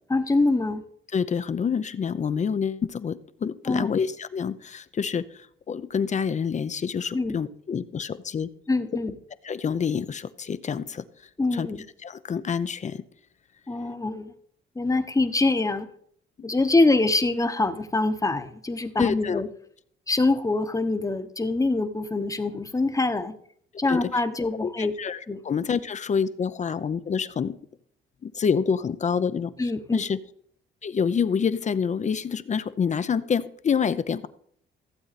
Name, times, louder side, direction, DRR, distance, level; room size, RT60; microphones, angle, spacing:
voice 1, 0.1-0.8 3.7-3.9 7.1-7.4 8.7-9.2 11.4-11.8 13.7-14.3 14.8-15.9 16.4-19.5 20.1-23.3 23.8-24.9 25.3-25.4 29.6-30.0, left 2 dB, 15° left, 10 dB, 1.0 m, -24 dB
voice 2, 1.1-8.5 9.4-11.0 11.5-11.7 12.0-13.0 19.0-19.4 23.9-24.1 24.6-25.2 25.4-27.6 28.2-29.5 29.9-30.2 30.8-34.3, left 6 dB, 35° left, 14 dB, 0.6 m, -27 dB
15.5 x 7.8 x 4.1 m, 0.64 s
cardioid pair, 90°, 20 cm